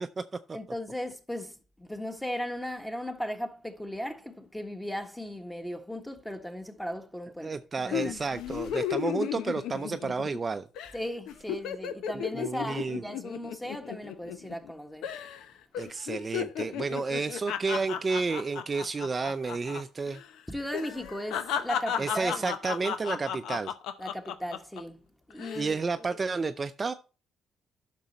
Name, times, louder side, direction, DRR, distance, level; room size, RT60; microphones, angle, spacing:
voice 1, 0.5-8.1 10.9-15.1 20.5-22.4 24.0-25.8, equal, 5° left, 1.5 m, -37 dB
voice 2, 7.4-10.7 12.1-13.0 15.8-20.2 22.0-23.7 25.6-26.9, right 4 dB, 35° right, 0.5 m, -31 dB
sound 1, 7.9-10.4 10.8-11.0 11.3-14.7 15.0-15.4 15.7-19.8 20.1-20.3 20.7-24.8 25.3-25.7, left 9 dB, 90° left, 0.8 m, -34 dB
10.0 x 6.1 x 4.3 m
cardioid pair, 90°, 0 cm